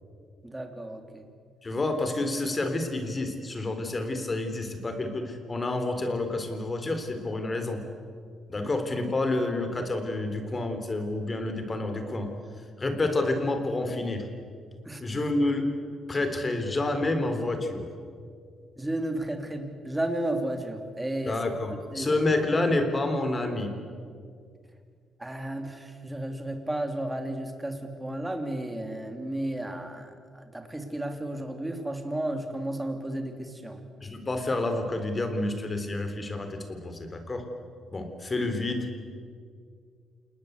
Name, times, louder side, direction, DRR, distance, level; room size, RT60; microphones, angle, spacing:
voice 1, 0.4-1.3 14.8-15.0 18.8-21.4 21.9-22.1 25.2-33.8, right 1 dB, 10° right, 5 dB, 3.3 m, -33 dB
voice 2, 1.6-7.8 8.5-12.3 12.8-14.3 15.0-15.7 16.1-17.9 21.3-23.7 34.0-37.5 37.9-38.9, left 2 dB, 25° left, 7 dB, 4.0 m, -29 dB
28.0 x 20.0 x 8.3 m, 2.2 s
cardioid pair, 90°, 0 cm